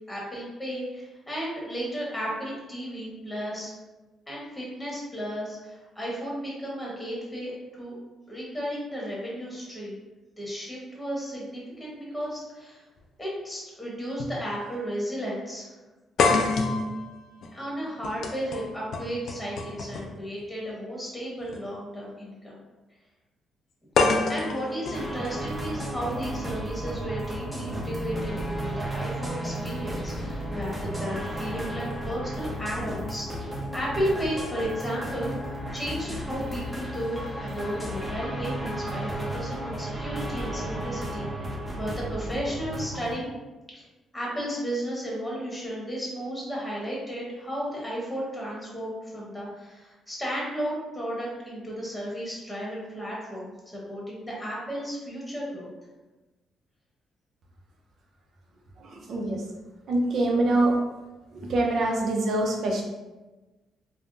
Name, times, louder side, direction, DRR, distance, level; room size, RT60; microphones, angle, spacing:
voice 1, 0.1-3.7 4.3-8.0 8.3-10.0 10.4-12.8 13.2-15.7 17.5-22.6 24.3-35.3 35.7-43.4 43.7-43.8 44.1-55.7, equal, 10° left, -4 dB, 1.0 m, -34 dB
sound 1, 13.0-13.1 14.2-14.4 14.7-14.8 16.2-20.2 21.4-21.6 24.0-26.0, left 3 dB, 65° left, 0.4 m, -27 dB
sound 2, 24.9-43.1, right 1 dB, 10° right, 0.7 m, -33 dB
voice 2, 58.8-59.4 59.9-60.8 61.3-62.8, right 2 dB, 60° right, 0 dB, 0.5 m, -24 dB
3.4 x 2.0 x 2.5 m, 1.1 s
cardioid pair, 90°, 0 cm